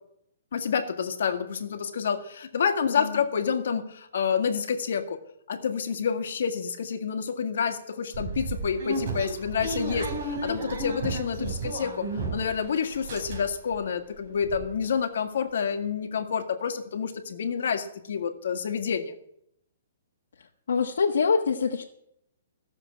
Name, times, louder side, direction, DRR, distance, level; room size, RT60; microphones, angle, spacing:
voice 1, 0.5-5.2 5.5-19.1, left 6 dB, 60° left, 7 dB, 1.8 m, -28 dB
voice 2, 2.9-3.2 20.7-21.8, left 5 dB, 85° left, 0 dB, 1.3 m, -25 dB
sound 1, 8.1-12.6 12.9-13.7 14.1-14.2 14.4-14.6, right 2 dB, 40° right, 4.0 m, -33 dB
15.0 x 7.1 x 8.5 m, 0.75 s
hypercardioid pair, 170°, 0 cm